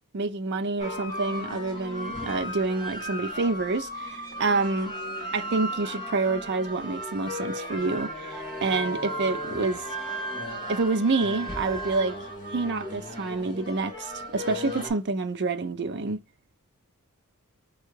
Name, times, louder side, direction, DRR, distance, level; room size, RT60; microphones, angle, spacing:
voice 1, 0.1-4.9 5.3-9.8 10.7-12.2 12.5-16.2, right 3 dB, 50° right, 0.6 m, -28 dB
sound 1, 0.8-14.9, equal, 20° left, 2.8 m, -35 dB
4.5 x 2.4 x 4.6 m
head